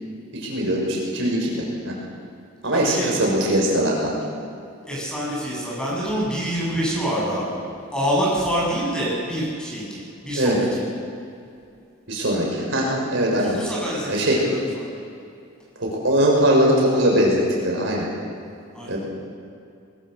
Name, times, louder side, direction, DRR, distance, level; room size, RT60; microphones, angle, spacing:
voice 1, 0.3-1.9 2.6-4.2 10.3-10.6 12.1-13.6 14.1-14.4 15.8-18.1 18.9-19.0, right 1 dB, 65° right, -2 dB, 6.2 m, -21 dB
voice 2, 2.7-3.1 4.9-7.6 7.9-10.8 13.4-15.0 18.7-19.0, equal, 5° left, -5 dB, 7.9 m, -26 dB
23.0 x 21.0 x 6.7 m, 2.5 s
head